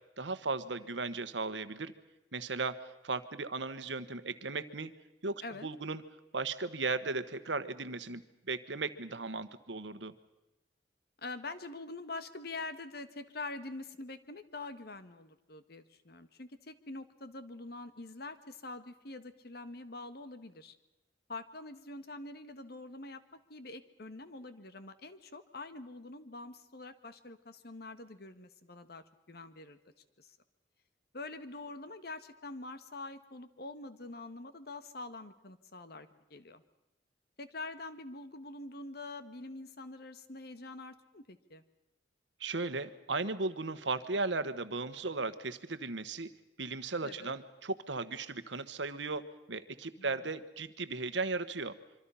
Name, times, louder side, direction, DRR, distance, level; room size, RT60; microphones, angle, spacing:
voice 1, 0.2-1.9 2.3-2.8 3.0-4.9 5.2-6.0 6.3-8.2 8.5-10.1 42.4-46.3 46.6-49.2 49.5-51.7, right 3 dB, 80° right, 13 dB, 1.3 m, -36 dB
voice 2, 11.2-20.8 21.3-29.8 30.2-30.4 31.1-36.6 37.4-41.6 47.0-47.3 50.0-50.1, left 2 dB, 60° left, 11 dB, 1.5 m, -45 dB
25.5 x 24.5 x 5.7 m, 0.95 s
head